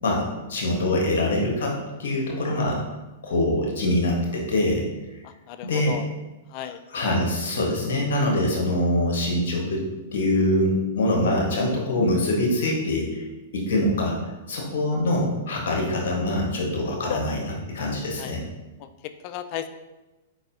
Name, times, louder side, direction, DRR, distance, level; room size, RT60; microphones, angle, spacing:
voice 1, 0.0-1.7 2.0-2.8 3.2-4.8 5.6-5.9 6.9-9.8 10.1-13.2 13.5-14.2 14.5-18.4, left 1 dB, 65° left, -1 dB, 1.3 m, -24 dB
voice 2, 5.2-6.1 6.5-6.8 16.8-17.2 18.2-18.3 18.8-19.7, left 11 dB, 45° left, 10 dB, 0.3 m, -35 dB
4.6 x 3.9 x 2.7 m, 1.1 s
hypercardioid pair, 110°, 0 cm